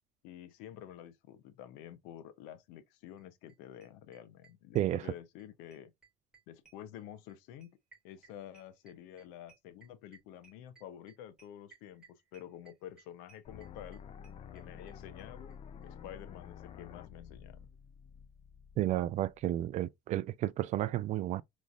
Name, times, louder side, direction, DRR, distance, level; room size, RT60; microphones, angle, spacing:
voice 1, 0.2-5.9 6.5-7.7 8.0-14.0 14.5-15.5 15.8-17.7, left 10 dB, 80° left, 0.7 m, -49 dB
sound 1, 3.2-3.3 3.5-3.6 3.8-5.5 5.7-14.9 15.2-15.3 15.5-15.6 15.8-15.9, right 5 dB, 5° right, 2.9 m, -62 dB
sound 2, 13.4-19.4, left 7 dB, 40° left, 0.6 m, -50 dB
voice 2, 18.8-21.4, right 13 dB, 50° right, 0.4 m, -32 dB
5.1 x 3.2 x 2.4 m
supercardioid pair, 110°, 15 cm